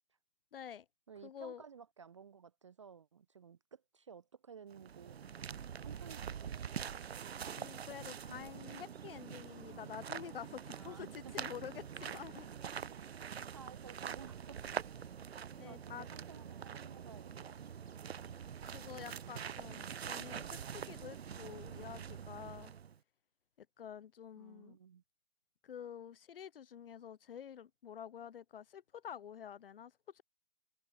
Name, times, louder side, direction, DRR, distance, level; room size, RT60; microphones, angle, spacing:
voice 1, 0.5-0.8 1.2-1.6 7.6-12.5 12.7-12.9 15.6-16.1 18.7-22.7 23.6-24.8 25.6-30.2, left 8 dB, 55° left, 1.2 m, -49 dB
voice 2, 1.1-5.3 5.8-6.9 10.7-11.5 13.5-14.6 15.6-17.6 24.4-25.0, right 6 dB, 30° right, 0.4 m, -55 dB
sound 1, 4.7-23.0, right 8 dB, 65° right, 1.0 m, -45 dB
Wind instrument woodwind instrument, 8.5-13.3, right 7 dB, 5° right, 1.0 m, -63 dB
figure-of-eight pair, 140°, 34 cm